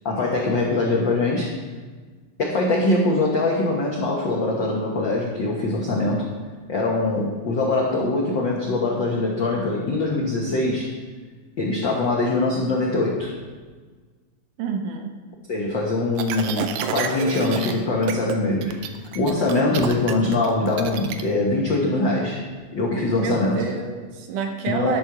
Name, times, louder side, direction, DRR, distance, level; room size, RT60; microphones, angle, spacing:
voice 1, 0.0-1.5 2.4-6.3 6.7-10.9 11.6-13.3 15.5-18.8 19.1-22.4 22.7-23.6 24.7-24.9, left 2 dB, 70° left, -2 dB, 1.1 m, -23 dB
voice 2, 14.6-15.1 23.2-25.0, right 6 dB, 75° right, 4 dB, 2.3 m, -28 dB
sound 1, 16.2-17.7 18.0-18.4 18.6-21.2, right 8 dB, 90° right, 2.4 m, -29 dB
11.5 x 6.4 x 5.9 m, 1.4 s
omnidirectional pair, 4.0 m